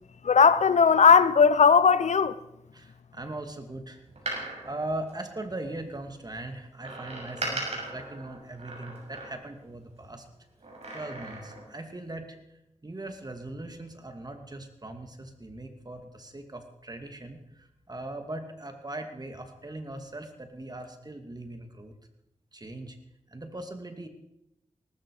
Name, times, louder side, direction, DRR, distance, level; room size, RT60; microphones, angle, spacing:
voice 1, 0.2-2.3, left 6 dB, 75° left, 0.7 m, -18 dB
voice 2, 2.7-4.0 4.3-10.2 10.9-12.4 12.8-21.9 22.5-23.0 23.3-24.1, right 2 dB, 35° right, 2.6 m, -40 dB
Door, 4.0-5.9 6.8-9.7 10.6-11.7 12.1-12.2, right 2 dB, 65° right, 6.7 m, -38 dB
18.5 x 15.0 x 5.0 m
cardioid pair, 55°, 12 cm